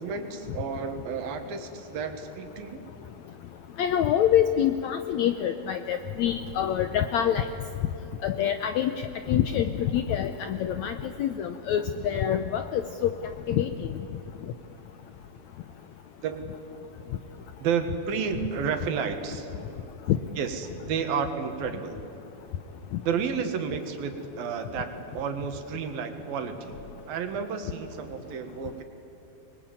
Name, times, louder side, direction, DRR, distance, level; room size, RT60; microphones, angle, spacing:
voice 1, 0.0-2.8 16.2-16.5 17.6-19.5 20.4-22.0 23.0-26.7 27.1-28.8, right 6 dB, 80° right, 7 dB, 3.5 m, -31 dB
voice 2, 3.8-7.5 8.2-8.9 9.3-13.1 13.5-13.9 20.1-20.2, left 10 dB, 80° left, 9 dB, 1.6 m, -26 dB
25.0 x 21.5 x 9.0 m, 2.9 s
omnidirectional pair, 4.1 m